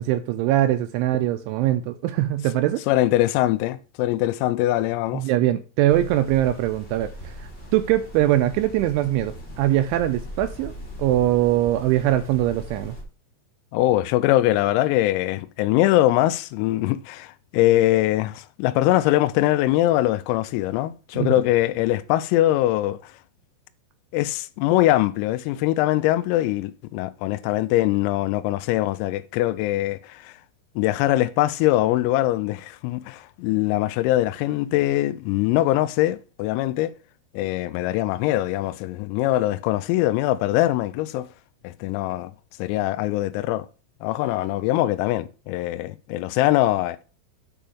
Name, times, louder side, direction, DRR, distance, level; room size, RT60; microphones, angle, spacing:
voice 1, 0.0-2.8 5.1-10.7 11.0-13.0 21.1-21.3, right 13 dB, 85° right, 2.7 m, -22 dB
voice 2, 2.9-5.2 13.7-23.1 24.1-30.3 30.8-36.9 37.3-41.3 41.6-42.3 42.6-43.7 44.0-47.0, left 15 dB, 85° left, 3.3 m, -22 dB
sound 1, 5.9-13.0, equal, 25° left, 1.3 m, -40 dB
9.0 x 4.8 x 6.8 m
omnidirectional pair, 6.0 m